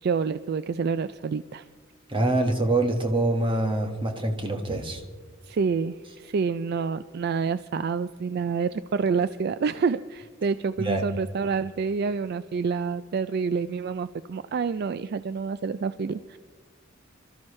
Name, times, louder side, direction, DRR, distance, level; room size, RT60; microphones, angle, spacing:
voice 1, 0.0-1.7 5.4-16.4, right 5 dB, 50° right, 14 dB, 0.3 m, -28 dB
voice 2, 2.1-5.0 10.8-11.0, right 2 dB, 25° right, 3 dB, 1.5 m, -25 dB
26.0 x 13.5 x 3.2 m, 1.4 s
head